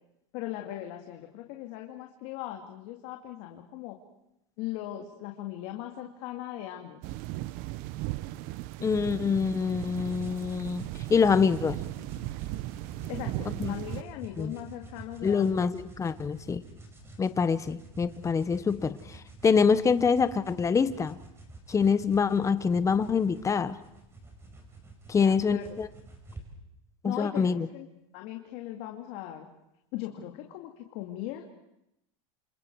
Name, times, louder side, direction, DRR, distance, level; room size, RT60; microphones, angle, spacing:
voice 1, 0.3-4.0 4.6-7.0 13.1-15.7 25.1-25.7 27.0-27.9 28.1-29.5 29.9-31.5, left 13 dB, 60° left, 2 dB, 2.3 m, -39 dB
sound 1, 7.0-14.0, right 17 dB, 55° right, 0.8 m, -37 dB
voice 2, 8.8-11.8 13.6-13.7 14.4-14.5 15.2-16.6 17.2-19.2 19.4-21.2 21.7-23.8 25.1-25.9 27.0-27.7, left 5 dB, 15° left, 13 dB, 1.0 m, -25 dB
sound 2, 9.7-26.5, right 2 dB, 15° right, 5.6 m, -48 dB
29.5 x 27.0 x 4.8 m, 0.84 s
supercardioid pair, 130°, 17 cm